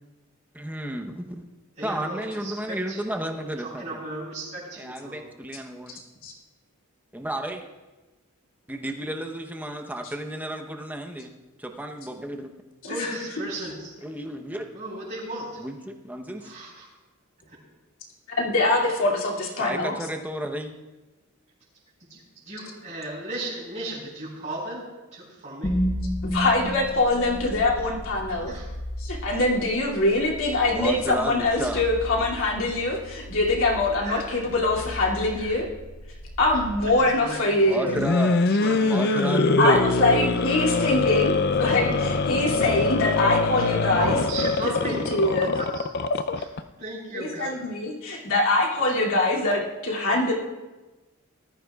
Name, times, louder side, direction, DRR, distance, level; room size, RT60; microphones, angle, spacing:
voice 1, 0.5-1.4 1.8-4.0 4.8-6.0 7.1-7.6 8.8-11.3 11.6-12.5 14.0-14.7 15.6-16.5 19.6-20.8 30.7-31.8 37.6-38.5 38.8-39.9, right 1 dB, 10° right, 4 dB, 0.9 m, -32 dB
voice 2, 1.8-3.0 3.4-5.2 12.9-13.9 14.7-15.6 16.4-16.9 17.5-17.6 22.1-24.9 25.1-25.8 28.4-28.7 34.0-34.4 35.3-35.6 36.5-37.9 38.5-39.6 43.7-45.9 46.3-46.5 46.8-47.5, right 1 dB, 35° right, -7 dB, 4.6 m, -36 dB
voice 3, 18.4-19.9 26.3-28.5 29.0-35.7 36.4-38.0 39.6-44.2 44.8-45.5 47.1-50.3, left 2 dB, 70° left, -3 dB, 2.6 m, -23 dB
sound 1, 25.6-37.7, equal, 25° left, 0.9 m, -34 dB
sound 2, 37.8-46.6, left 3 dB, 45° left, 0.5 m, -23 dB
19.0 x 14.0 x 2.4 m, 1.2 s
head